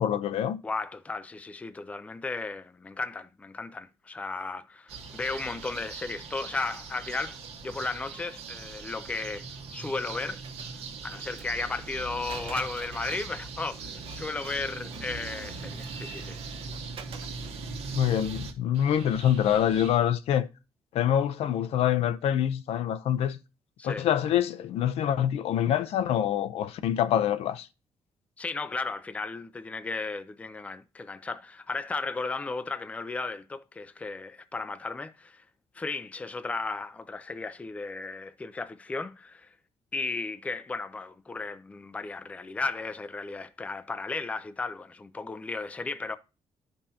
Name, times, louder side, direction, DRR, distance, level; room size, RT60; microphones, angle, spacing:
voice 1, 0.0-0.6 17.9-20.5 20.9-23.4 23.8-27.7, left 10 dB, 75° left, 0.6 m, -25 dB
voice 2, 0.6-9.4 9.7-10.4 11.0-16.4 23.8-24.1 28.4-35.4 35.7-39.5 39.9-46.2, left 3 dB, 15° left, 0.4 m, -35 dB
sound 1, 4.9-20.0, right 4 dB, 75° right, 1.4 m, -40 dB
Printer, 10.4-17.7, right 6 dB, 60° right, 0.7 m, -48 dB
11.5 x 5.4 x 2.8 m
cardioid pair, 165°, 10 cm